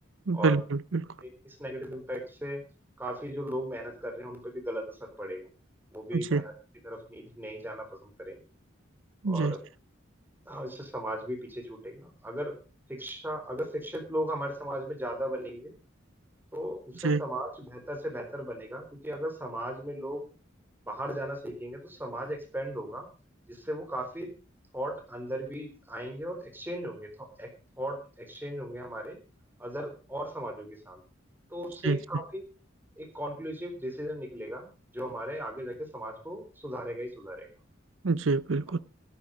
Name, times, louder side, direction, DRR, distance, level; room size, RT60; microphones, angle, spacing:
voice 1, 0.3-1.0 6.1-6.4 9.2-9.5 17.0-17.2 31.8-32.0 38.0-38.8, right 3 dB, 75° right, 0.7 m, -26 dB
voice 2, 1.2-2.6 3.0-5.5 5.9-6.5 6.8-8.4 9.3-9.6 10.5-12.6 12.9-15.7 16.5-20.2 20.9-23.1 23.5-24.3 24.7-27.5 27.8-29.2 29.6-31.0 31.5-32.4 33.0-37.5, equal, 10° right, 3.8 m, -37 dB
14.0 x 13.0 x 5.0 m
head